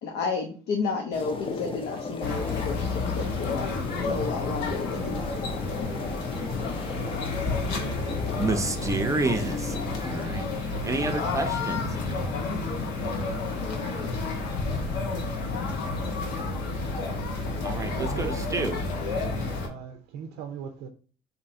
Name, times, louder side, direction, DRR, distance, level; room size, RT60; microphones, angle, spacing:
voice 1, 0.0-3.7 3.9-5.9, left 4 dB, 70° left, 0.6 m, -32 dB
sound 1, 1.1-10.3, left 4 dB, 30° left, 0.6 m, -37 dB
sound 2, 2.2-19.7, left 3 dB, 85° left, 1.0 m, -30 dB
voice 2, 8.4-9.8 10.0-12.0 17.6-18.8, right 3 dB, 20° right, 0.6 m, -29 dB
voice 3, 17.4-18.8 19.6-20.9, right 7 dB, 90° right, 0.5 m, -39 dB
2.7 x 2.6 x 4.2 m
cardioid pair, 110°, 17 cm